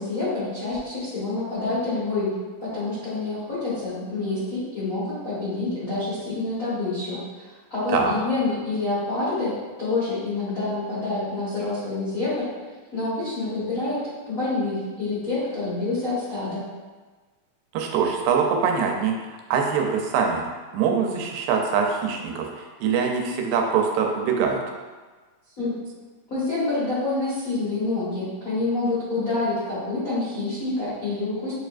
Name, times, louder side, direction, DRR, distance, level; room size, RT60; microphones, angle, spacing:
voice 1, 0.0-2.3 2.6-12.4 12.9-14.0 14.3-16.6 25.6-25.7 26.3-31.5, left 3 dB, 50° left, -12 dB, 1.0 m, -27 dB
voice 2, 17.7-20.4 20.7-24.6, right 6 dB, 90° right, 2 dB, 2.3 m, -23 dB
6.7 x 3.2 x 2.5 m, 1.3 s
omnidirectional pair, 3.8 m